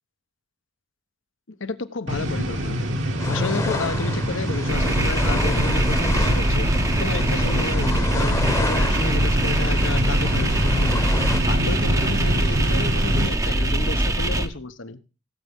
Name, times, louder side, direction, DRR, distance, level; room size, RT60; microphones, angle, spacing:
voice 1, 1.5-2.9 3.3-6.7 6.9-11.1 11.5-15.0, left 3 dB, 70° left, 1.0 m, -31 dB
sound 1, 2.1-13.3, equal, 70° right, 1.7 m, -26 dB
sound 2, 3.2-11.4, left 2 dB, 15° left, 1.0 m, -31 dB
sound 3, 4.7-14.5, right 1 dB, 15° right, 0.8 m, -22 dB
17.0 x 8.2 x 3.6 m
head